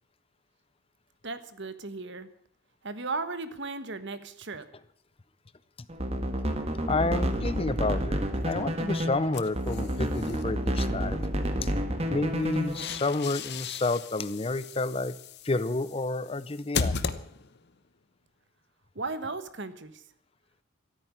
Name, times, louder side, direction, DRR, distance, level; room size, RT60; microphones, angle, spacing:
voice 1, 1.2-2.3 2.8-4.7 18.9-20.0, right 3 dB, 55° right, 12 dB, 1.3 m, -36 dB
sound 1, 5.9-13.0, equal, 30° right, 1.5 m, -30 dB
voice 2, 6.9-11.3 11.6-11.7 12.1-15.2 15.4-17.0, left 2 dB, 25° left, 16 dB, 0.6 m, -30 dB
sound 2, 9.3-10.4 12.4-17.7, left 5 dB, 50° left, 0.8 m, -36 dB
13.5 x 8.9 x 9.7 m, 0.67 s
head